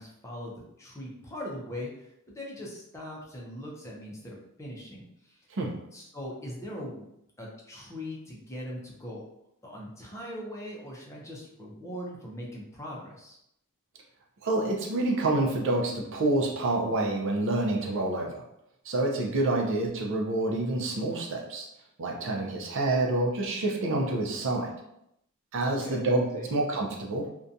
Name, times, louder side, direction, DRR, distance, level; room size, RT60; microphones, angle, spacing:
voice 1, 0.0-5.4 5.9-7.1 7.4-9.2 9.6-13.4 25.6-26.1 26.3-26.5, equal, 15° left, -3 dB, 0.5 m, -40 dB
voice 2, 14.4-18.4 18.8-21.7 22.0-24.7 25.5-27.3, right 2 dB, 60° right, 0 dB, 0.5 m, -27 dB
2.5 x 2.2 x 2.6 m, 0.78 s
head